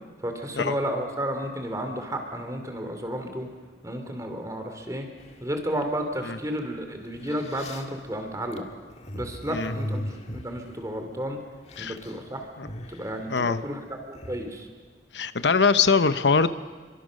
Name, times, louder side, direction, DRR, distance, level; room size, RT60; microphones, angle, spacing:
voice 1, 0.2-3.5 3.8-5.1 5.4-8.6 9.1-11.4 11.8-12.5 12.9-14.7, equal, 20° right, 5 dB, 3.0 m, -32 dB
sound 1, 5.2-5.8 6.6-6.7 7.1-11.3 11.6-12.2 12.5-14.5, left 1 dB, 40° left, 1.7 m, -38 dB
voice 2, 13.3-13.6 15.1-16.5, left 5 dB, 85° left, 12 dB, 0.9 m, -22 dB
29.0 x 23.0 x 6.4 m, 1.4 s
head